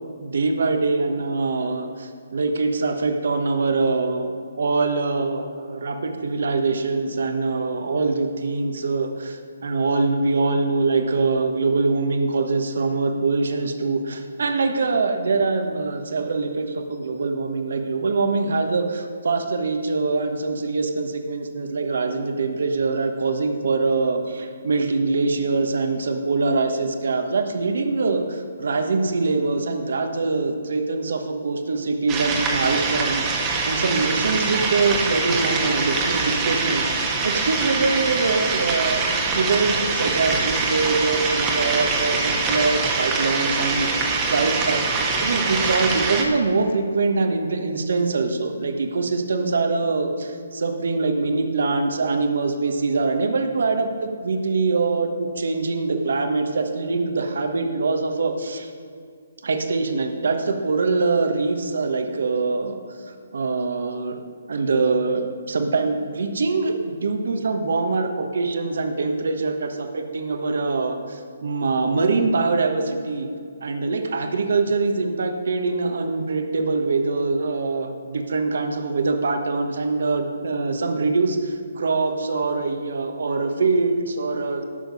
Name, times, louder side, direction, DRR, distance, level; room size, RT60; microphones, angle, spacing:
voice 1, 0.2-39.0 39.3-58.7 59.4-62.8 63.1-64.2 64.5-73.3 73.6-84.7, right 3 dB, 65° right, 6 dB, 1.2 m, -23 dB
sound 1, 32.1-46.2, right 4 dB, 20° right, 1.3 m, -24 dB
11.5 x 6.4 x 5.3 m, 2.3 s
figure-of-eight pair, 145°, 0 cm